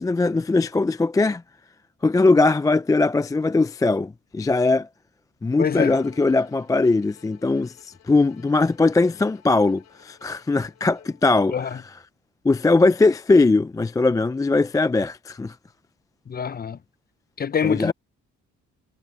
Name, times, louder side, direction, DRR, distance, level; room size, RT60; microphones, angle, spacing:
voice 1, 0.0-1.4 2.0-4.9 5.4-11.8 12.4-15.5 17.6-17.9, left 3 dB, 10° left, 0.3 m, -20 dB
voice 2, 5.6-6.0 11.5-11.8 16.3-16.8 17.4-17.9, left 7 dB, 30° left, 0.7 m, -25 dB
Bowed string instrument, 5.7-11.4, left 9 dB, 60° left, 4.1 m, -52 dB
cardioid pair, 90°, 30 cm